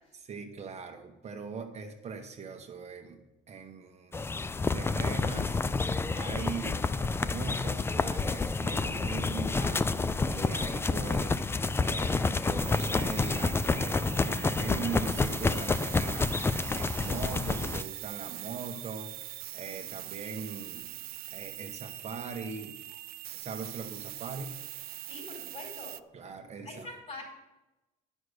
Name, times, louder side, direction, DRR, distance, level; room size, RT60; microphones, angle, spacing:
voice 1, 0.2-3.2 3.5-4.3 4.7-5.6 6.1-6.8 7.2-9.9 10.2-16.3 16.7-19.2 19.5-20.9 21.3-22.8 23.3-24.5 26.1-26.9, right 4 dB, 40° right, 4 dB, 1.0 m, -40 dB
sound 1, 4.1-17.8, left 3 dB, 15° left, 0.3 m, -29 dB
sound 2, 12.6-26.0, right 15 dB, 70° right, 0.4 m, -42 dB
voice 2, 25.1-26.0 26.6-27.2, left 2 dB, 45° left, 1 dB, 4.4 m, -43 dB
9.8 x 6.3 x 6.5 m, 0.99 s
cardioid pair, 110°, 17 cm